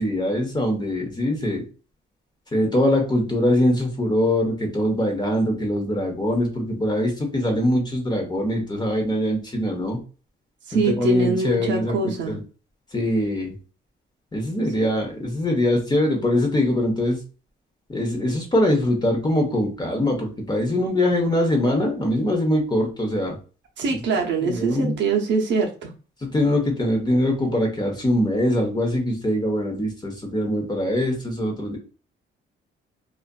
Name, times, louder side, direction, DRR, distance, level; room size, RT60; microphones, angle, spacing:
voice 1, 0.0-1.6 2.5-10.0 10.7-12.4 12.9-13.5 14.3-17.2 17.9-23.4 24.2-24.9 26.2-31.8, left 1 dB, 20° left, 1 dB, 0.9 m, -23 dB
voice 2, 10.7-12.4 23.8-25.9, right 4 dB, 70° right, 1 dB, 0.7 m, -23 dB
2.5 x 2.4 x 2.2 m, 0.35 s
cardioid pair, 90°, 20 cm